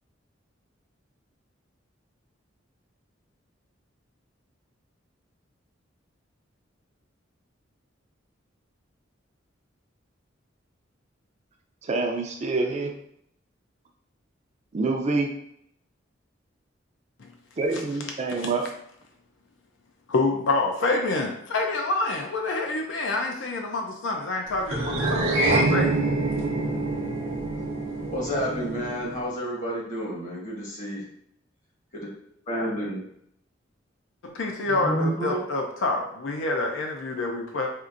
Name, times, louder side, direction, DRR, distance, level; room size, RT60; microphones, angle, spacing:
voice 1, 11.8-12.9 14.7-15.3 17.6-18.7, right 3 dB, 35° right, 2 dB, 0.4 m, -26 dB
voice 2, 17.7-18.7 20.1-26.0 34.2-37.7, left 2 dB, 70° left, 2 dB, 0.5 m, -27 dB
sound 1, 24.7-29.2, right 2 dB, 85° right, 0.6 m, -26 dB
voice 3, 28.1-31.0 31.9-32.1 32.5-33.0 34.7-35.4, equal, 40° left, -3 dB, 1.1 m, -30 dB
4.3 x 2.5 x 2.5 m, 0.72 s
head